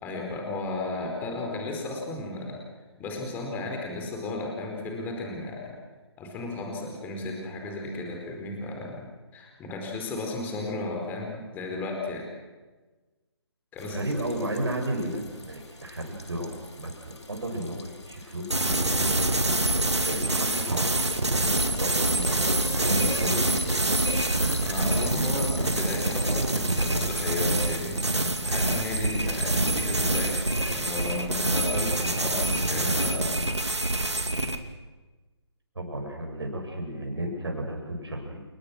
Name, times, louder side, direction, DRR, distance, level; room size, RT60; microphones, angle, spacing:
voice 1, 0.0-2.6 3.0-5.8 6.2-9.1 9.3-12.3 13.7-14.0 24.6-28.0 28.4-33.4, left 2 dB, 10° left, 1 dB, 4.7 m, -34 dB
Frying (food), 13.8-30.9, left 2 dB, 80° left, 3.1 m, -43 dB
voice 2, 13.8-18.9 20.0-20.9 21.2-23.9 35.7-38.4, right 1 dB, 65° right, 1 dB, 6.7 m, -33 dB
sound 1, 18.5-34.6, right 2 dB, 80° right, 2.5 m, -26 dB
29.5 x 20.5 x 6.4 m, 1.2 s
figure-of-eight pair, 145°, 14 cm